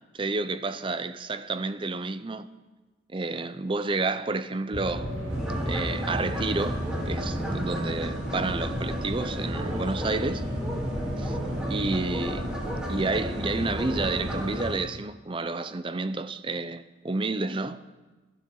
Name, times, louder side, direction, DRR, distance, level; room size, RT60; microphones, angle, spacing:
voice 1, 0.1-2.5 3.1-5.1 5.7-6.8 7.0-10.4 11.2-11.4 11.6-12.5 12.9-17.8, right 3 dB, 25° right, 0.5 m, -30 dB
sound 1, 4.7-14.5, equal, 90° right, 2.7 m, -34 dB
sound 2, 5.3-14.8, equal, 5° right, 3.3 m, -34 dB
22.0 x 13.0 x 3.9 m
head